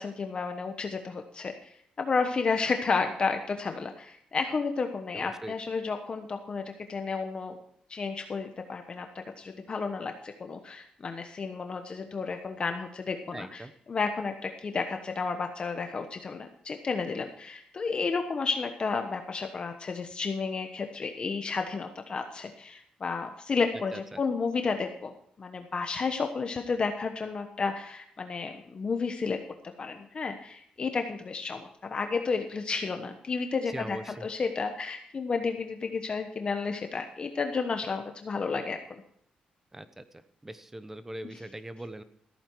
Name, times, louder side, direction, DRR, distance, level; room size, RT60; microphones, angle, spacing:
voice 1, 0.0-1.5 2.0-6.6 6.9-7.5 7.9-13.6 13.9-25.1 25.4-29.4 29.8-38.8 41.2-41.3, left 4 dB, 40° left, 6 dB, 1.1 m, -32 dB
voice 2, 5.1-5.5 13.3-13.7 23.9-24.2 33.7-34.3 39.7-40.0 40.4-42.0, right 1 dB, 15° right, 12 dB, 0.9 m, -41 dB
14.5 x 8.7 x 4.7 m, 0.66 s
cardioid pair, 110°, 3 cm